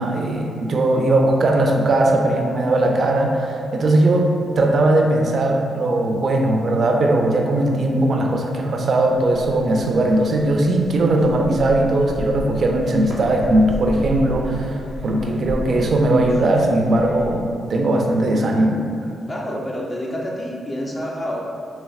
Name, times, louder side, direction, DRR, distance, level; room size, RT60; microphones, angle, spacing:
voice 1, 0.0-18.8, right 1 dB, 60° right, 2 dB, 0.4 m, -19 dB
sound 1, 9.2-17.4, left 1 dB, 60° left, 0.9 m, -34 dB
voice 2, 19.3-21.4, equal, 35° left, -3 dB, 0.6 m, -28 dB
4.1 x 2.8 x 2.4 m, 2.4 s
supercardioid pair, 55°, 0 cm